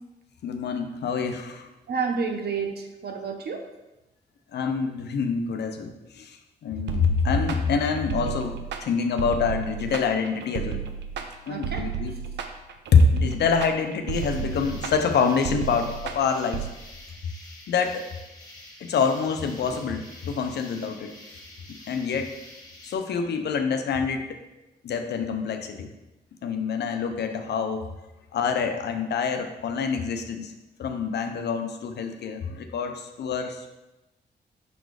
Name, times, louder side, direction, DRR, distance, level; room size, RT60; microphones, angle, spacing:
voice 1, 0.4-1.7 4.5-10.8 11.5-12.1 12.9-16.7 17.7-18.1 18.8-21.1 21.9-22.3 22.8-24.4 24.8-25.9 26.4-27.8 28.3-30.5 30.8-33.7, left 5 dB, 75° left, 6 dB, 0.7 m, -26 dB
voice 2, 1.9-3.6 11.5-11.9, right 5 dB, 65° right, 4 dB, 1.0 m, -30 dB
sound 1, 6.9-16.7, right 8 dB, 85° right, 0.6 m, -33 dB
sound 2, 14.1-23.0, left 1 dB, 20° left, 1.7 m, -47 dB
5.9 x 4.0 x 4.8 m, 0.99 s
cardioid pair, 65°, 18 cm